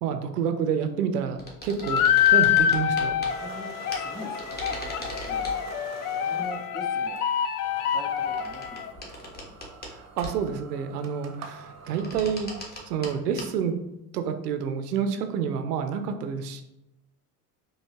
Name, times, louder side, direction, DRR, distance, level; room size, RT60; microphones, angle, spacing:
voice 1, 0.0-2.0 2.3-3.1 10.2-13.7 14.1-16.6, right 7 dB, 80° right, 8 dB, 0.6 m, -28 dB
sound 1, 1.4-3.3 3.9-4.0 4.4-5.6 8.2-9.9 10.2-10.6 11.8-13.1 13.4-13.5, equal, 20° left, 1.2 m, -39 dB
sound 2, 1.8-8.9, left 9 dB, 75° left, 0.5 m, -25 dB
voice 2, 3.3-5.6 6.2-7.2 7.9-9.5, left 1 dB, ahead, 1 dB, 0.3 m, -43 dB
sound 3, 3.3-6.7 7.2-7.3 7.6-13.1, right 5 dB, 35° right, 0.7 m, -45 dB
4.6 x 2.8 x 2.8 m, 0.91 s
hypercardioid pair, 80°, 46 cm